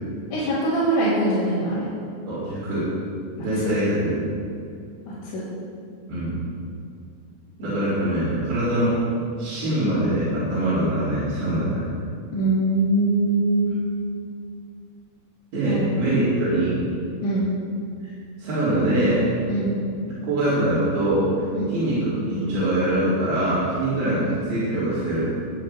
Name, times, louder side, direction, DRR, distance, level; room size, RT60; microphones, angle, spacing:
voice 1, 0.3-1.9 3.6-3.7 5.1-5.4 12.3-13.7 15.6-16.4 17.2-17.5 19.5-19.7 21.5-21.7, right 2 dB, 85° left, -12 dB, 5.6 m, -23 dB
voice 2, 2.3-2.8 3.4-4.1 6.1-6.4 7.6-9.0 9.4-11.9 15.5-16.7 18.4-19.3 20.1-21.3 21.7-25.3, right 1 dB, 60° right, -14 dB, 6.1 m, -23 dB
21.0 x 10.0 x 4.5 m, 2.4 s
omnidirectional pair, 5.1 m